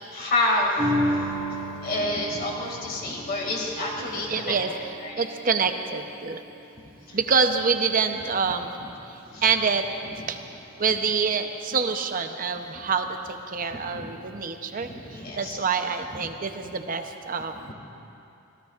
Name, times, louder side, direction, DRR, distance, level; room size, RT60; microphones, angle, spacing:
voice 1, 0.1-1.5 1.8-4.5 5.0-5.3 6.8-7.2 9.2-9.4 10.0-10.1 13.7-14.1 14.8-15.6 16.1-16.3, left 1 dB, 50° left, -2 dB, 2.4 m, -29 dB
sound 1, 0.8-7.4 7.9-8.0, equal, 25° right, 1.9 m, -33 dB
voice 2, 4.0-4.7 5.2-6.4 7.1-8.7 9.1-9.8 10.3-10.4 10.8-14.9 15.4-17.7, right 5 dB, 45° right, 6 dB, 0.7 m, -26 dB
25.5 x 16.5 x 2.5 m, 2.8 s
head